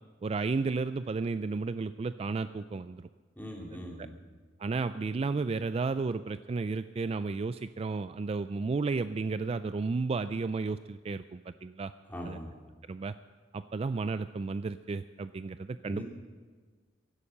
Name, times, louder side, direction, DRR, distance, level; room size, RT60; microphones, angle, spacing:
voice 1, 0.2-3.1 4.6-11.9 12.3-12.4 12.9-13.1 13.5-16.0, right 4 dB, 35° right, 12 dB, 0.3 m, -33 dB
voice 2, 3.4-4.1 12.1-12.5 15.8-16.0, equal, 10° left, -2 dB, 3.1 m, -41 dB
16.0 x 11.5 x 6.6 m, 1.5 s
head